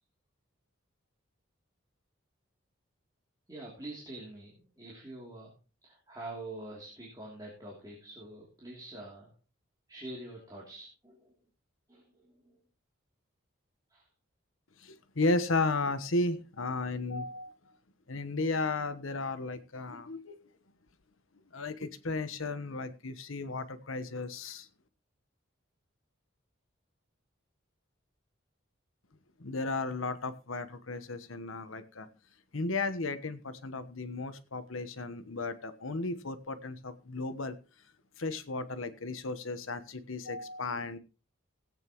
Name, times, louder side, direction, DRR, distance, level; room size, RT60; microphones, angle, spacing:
voice 1, 3.5-5.5 5.8-9.3 9.9-11.3 11.9-12.3 13.9-14.1, right 2 dB, 20° right, -3 dB, 3.0 m, -45 dB
voice 2, 14.8-17.5 18.1-20.4 21.5-24.7 29.4-32.1 32.5-37.6 38.2-41.0, left 3 dB, 80° left, 11 dB, 1.2 m, -34 dB
17.5 x 9.0 x 3.1 m, 0.33 s
head